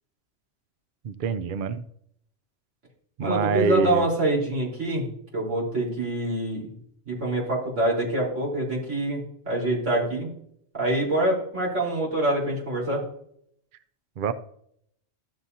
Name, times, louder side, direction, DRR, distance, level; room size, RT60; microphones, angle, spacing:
voice 1, 1.0-1.8 3.2-4.1 14.2-14.3, right 5 dB, 60° right, 12 dB, 0.6 m, -25 dB
voice 2, 3.2-6.7 7.1-10.3 10.7-13.0, right 1 dB, 75° right, -5 dB, 4.4 m, -26 dB
13.0 x 7.3 x 2.7 m, 0.68 s
omnidirectional pair, 1.3 m